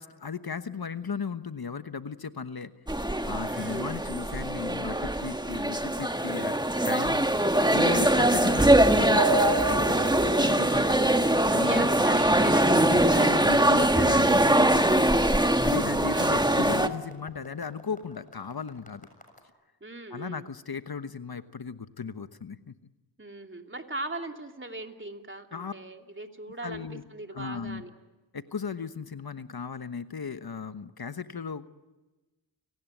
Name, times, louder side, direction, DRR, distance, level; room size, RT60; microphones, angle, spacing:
voice 1, 0.0-2.7 3.2-7.2 7.6-11.0 11.5-12.1 12.7-15.0 15.6-19.1 20.1-22.7 25.5-25.7 26.6-27.0 27.3-27.8 28.3-31.7, left 6 dB, 55° left, 11 dB, 1.2 m, -36 dB
sound 1, 2.9-16.9, right 1 dB, 10° right, 1.5 m, -22 dB
voice 2, 3.4-3.9 5.5-5.7 7.0-7.1 11.5-14.2 16.1-16.6 19.8-20.5 23.2-27.9, right 2 dB, 25° right, 4 dB, 2.9 m, -40 dB
sound 2, 6.9-19.4, left 1 dB, 20° left, 7.0 m, -52 dB
sound 3, 9.2-10.4, right 3 dB, 45° right, 3.2 m, -28 dB
30.0 x 18.5 x 9.3 m, 1.1 s
cardioid pair, 45°, 45 cm